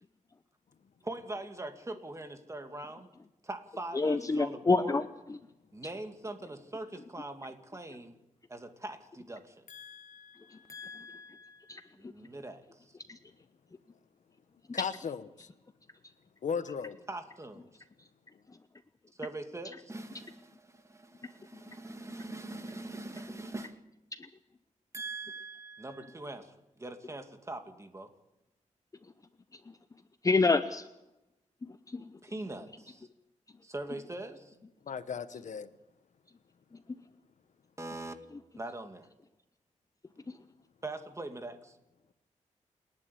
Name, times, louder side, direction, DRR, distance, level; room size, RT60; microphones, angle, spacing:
voice 1, 1.0-3.1 3.4-5.0 5.7-8.2 8.5-9.6 11.9-13.0 17.1-17.8 19.2-23.8 24.9-28.1 32.2-33.1 33.6-34.5 37.8-38.1 38.6-39.1 40.8-41.8, right 2 dB, 20° right, 2.3 m, -42 dB
voice 2, 4.0-5.0 10.7-11.8 13.1-13.2 30.2-30.8 31.9-32.0, left 3 dB, 25° left, 0.8 m, -28 dB
voice 3, 9.7-10.7 14.7-15.5 16.4-17.0 34.9-35.7, left 6 dB, 70° left, 1.1 m, -37 dB
28.5 x 11.0 x 8.5 m
wide cardioid pair, 110°, 13 cm